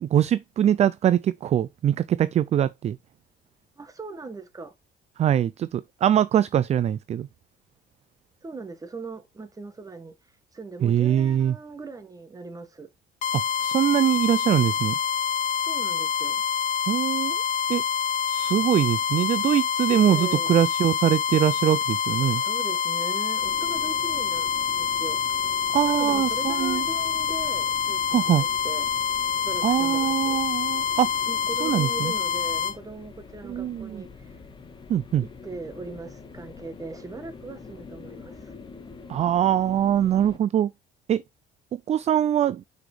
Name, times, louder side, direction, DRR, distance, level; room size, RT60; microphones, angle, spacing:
voice 1, 0.0-3.0 5.2-7.3 10.8-11.5 13.3-15.0 16.9-17.4 17.7-17.8 18.3-22.4 25.7-26.8 28.1-28.5 29.6-31.1 31.6-32.1 33.4-34.0 34.9-35.2 39.1-40.7 41.1-41.2 41.7-42.6, right 10 dB, 40° right, 0.4 m, -23 dB
voice 2, 3.8-4.7 8.4-10.1 10.5-12.9 15.6-16.4 20.1-20.6 22.2-25.2 25.8-28.9 29.4-30.4 31.3-34.4 35.2-38.5, right 3 dB, 20° right, 1.5 m, -39 dB
sound 1, 13.2-32.8, left 7 dB, 50° left, 0.9 m, -26 dB
sound 2, 23.4-40.4, left 4 dB, 30° left, 1.5 m, -45 dB
6.2 x 5.0 x 4.9 m
cardioid pair, 110°, 17 cm